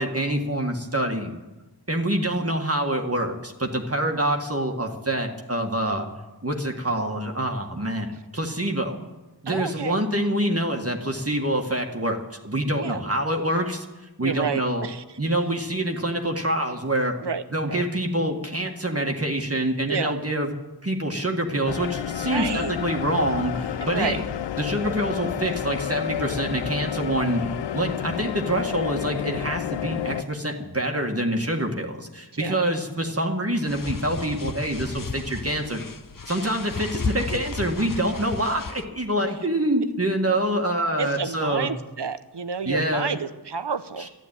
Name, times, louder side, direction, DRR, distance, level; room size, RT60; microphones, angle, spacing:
voice 1, 0.0-1.3 1.9-6.1 6.4-8.9 9.4-13.8 14.2-14.8 15.2-17.2 17.5-20.5 20.8-24.2 24.6-27.4 27.7-35.8 36.3-41.7 42.6-43.3 44.0-44.1, right 1 dB, 35° right, 2 dB, 1.8 m, -26 dB
voice 2, 9.5-10.0 12.8-13.0 14.2-15.0 17.2-17.4 17.7-17.8 19.9-20.1 22.2-22.7 23.8-24.2 32.3-32.6 41.0-44.1, right 5 dB, 75° right, 12 dB, 0.9 m, -30 dB
sound 1, 21.7-30.2, left 10 dB, 85° left, 0.5 m, -30 dB
sound 2, 33.7-38.8, left 4 dB, 50° left, 1.0 m, -34 dB
12.5 x 11.5 x 9.1 m, 1.1 s
wide cardioid pair, 50°, 41 cm